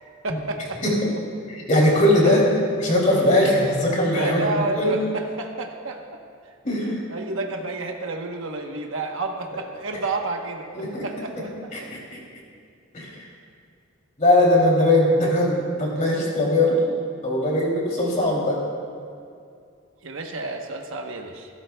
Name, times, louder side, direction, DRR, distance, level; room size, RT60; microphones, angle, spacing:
voice 1, 0.2-0.8 2.2-2.3 4.1-6.2 6.9-10.6 11.0-11.9 20.0-21.5, right 2 dB, 70° right, 2 dB, 1.0 m, -30 dB
voice 2, 1.5-2.4 2.8-4.9 6.6-6.9 10.7-11.1 11.7-12.2 12.9-13.0 14.2-16.8 17.2-18.6, left 1 dB, 35° left, -3 dB, 2.9 m, -20 dB
27.0 x 12.5 x 2.3 m, 2.3 s
head